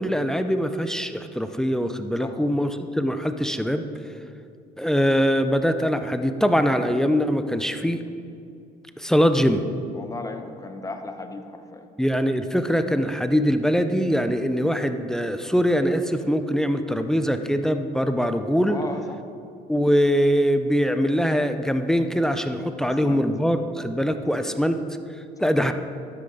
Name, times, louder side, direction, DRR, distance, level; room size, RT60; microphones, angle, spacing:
voice 1, 0.0-3.8 4.8-8.0 9.0-9.6 12.0-18.8 19.7-24.8 25.4-25.7, equal, 5° left, 8 dB, 0.6 m, -22 dB
voice 2, 9.9-11.9 18.7-19.2 22.8-23.3 24.3-24.4 25.4-25.5, left 3 dB, 20° left, 6 dB, 1.0 m, -36 dB
12.0 x 10.5 x 4.0 m, 2.4 s
cardioid pair, 110°, 17 cm